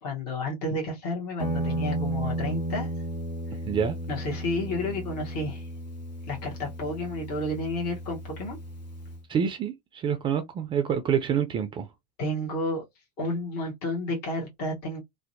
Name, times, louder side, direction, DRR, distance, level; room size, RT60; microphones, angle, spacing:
voice 1, 0.0-2.9 4.1-5.7 6.3-8.6 12.2-12.8 13.2-15.0, left 1 dB, 45° left, 0.9 m, -31 dB
Guitar, 1.4-9.2, right 1 dB, 85° left, 0.7 m, -34 dB
voice 2, 3.7-4.0 9.3-11.9, right 8 dB, 25° right, 0.3 m, -27 dB
2.5 x 2.0 x 2.5 m
figure-of-eight pair, 85°, 21 cm